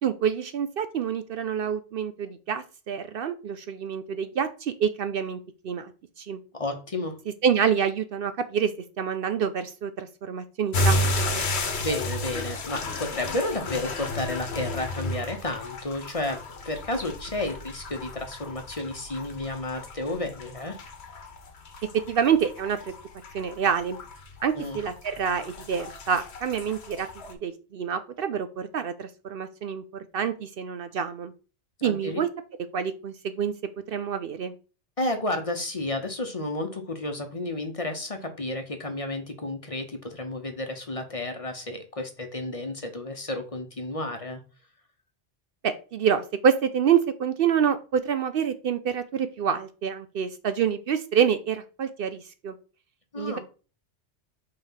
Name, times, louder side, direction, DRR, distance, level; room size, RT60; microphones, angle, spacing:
voice 1, 0.0-5.4 5.6-5.9 6.2-6.4 7.4-8.7 9.0-11.0 11.3-11.5 22.1-22.9 23.3-24.0 24.4-31.3 31.8-32.3 32.7-33.5 33.9-34.5 45.6-52.5 53.2-53.4, right 7 dB, 60° right, 11 dB, 0.7 m, -27 dB
voice 2, 6.5-7.2 11.8-20.8 24.5-24.8 31.8-32.2 35.0-44.4 53.1-53.4, left 2 dB, 35° left, 5 dB, 0.9 m, -32 dB
sound 1, 10.7-27.3, left 1 dB, 70° left, 1.3 m, -33 dB
5.8 x 3.3 x 5.6 m, 0.35 s
omnidirectional pair, 1.1 m